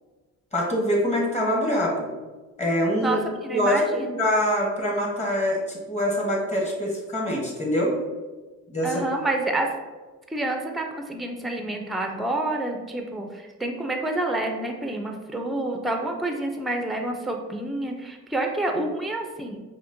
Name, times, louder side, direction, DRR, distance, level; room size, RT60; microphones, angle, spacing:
voice 1, 0.5-2.1 2.6-7.9 8.7-8.9, equal, 20° left, -2 dB, 1.2 m, -24 dB
voice 2, 3.0-4.2 8.8-9.7 10.3-19.6, right 2 dB, ahead, 3 dB, 0.4 m, -28 dB
5.2 x 2.1 x 2.6 m, 1.3 s
cardioid pair, 90°, 30 cm